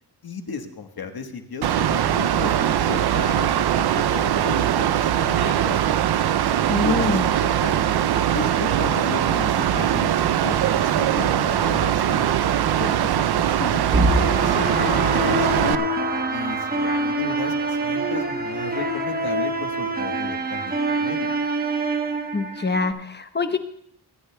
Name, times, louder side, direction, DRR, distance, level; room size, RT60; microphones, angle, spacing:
voice 1, 0.2-5.8 6.8-8.0 8.3-12.3 12.8-15.9 16.3-21.3, left 5 dB, 65° left, 5 dB, 1.4 m, -34 dB
Mechanical fan, 1.6-15.8, right 10 dB, 70° right, 0.6 m, -21 dB
voice 2, 6.7-7.3 22.3-23.6, left 3 dB, 25° left, 8 dB, 0.9 m, -24 dB
sound 1, 13.9-22.9, right 2 dB, 20° right, 1.1 m, -25 dB
24.0 x 10.0 x 2.3 m, 0.68 s
cardioid pair, 80°, 40 cm